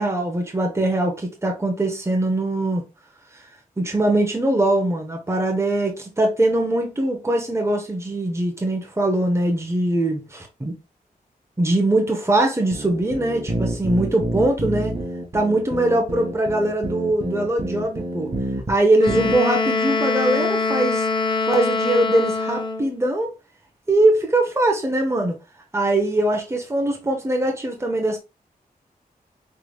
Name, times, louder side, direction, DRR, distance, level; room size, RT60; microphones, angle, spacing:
voice 1, 0.0-2.8 3.3-3.4 3.8-10.7 11.6-14.9 15.3-18.3 18.7-21.1 21.5-23.3 23.9-25.3 25.7-28.2, right 1 dB, 15° right, 1.0 m, -21 dB
sound 1, 12.7-18.7 19.1-19.4, right 1 dB, 35° right, 1.6 m, -28 dB
Wind instrument woodwind instrument, 19.0-22.9, left 3 dB, 30° left, 0.7 m, -23 dB
5.7 x 3.4 x 2.3 m
wide cardioid pair, 90°, 16 cm